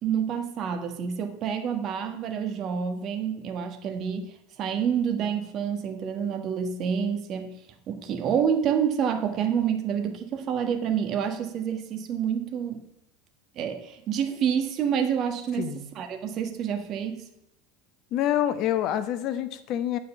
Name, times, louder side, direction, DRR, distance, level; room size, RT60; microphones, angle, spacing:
voice 1, 0.0-4.3 4.6-7.5 7.9-12.9 13.5-17.2, right 8 dB, 50° right, 6 dB, 1.4 m, -28 dB
voice 2, 18.1-20.0, left 11 dB, 55° left, 11 dB, 0.9 m, -27 dB
9.5 x 5.1 x 6.9 m, 0.82 s
hypercardioid pair, 80°, 0 cm